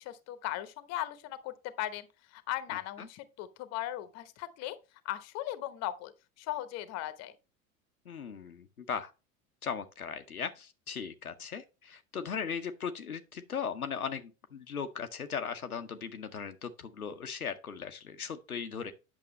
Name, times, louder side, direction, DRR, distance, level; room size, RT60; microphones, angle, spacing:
voice 1, 0.0-2.1 2.3-4.8 5.0-6.1 6.4-7.3, left 14 dB, 35° left, 0.9 m, -38 dB
voice 2, 2.7-3.1 8.1-9.1 9.6-18.9, left 6 dB, 85° left, 0.7 m, -38 dB
8.5 x 6.2 x 3.1 m
figure-of-eight pair, 75°, 43 cm